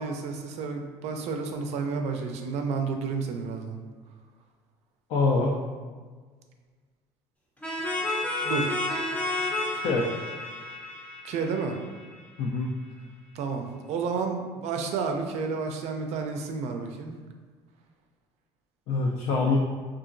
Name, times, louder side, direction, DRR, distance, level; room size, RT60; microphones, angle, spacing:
voice 1, 0.0-3.8 8.4-8.7 11.2-11.8 13.3-17.1, right 5 dB, 65° right, 4 dB, 0.4 m, -31 dB
voice 2, 5.1-5.6 9.8-10.1 12.4-12.7 18.9-19.6, left 3 dB, 70° left, -2 dB, 0.4 m, -24 dB
sound 1, 7.6-12.2, left 2 dB, 10° left, 0.6 m, -31 dB
2.8 x 2.4 x 2.5 m, 1.5 s
supercardioid pair, 90°, 12 cm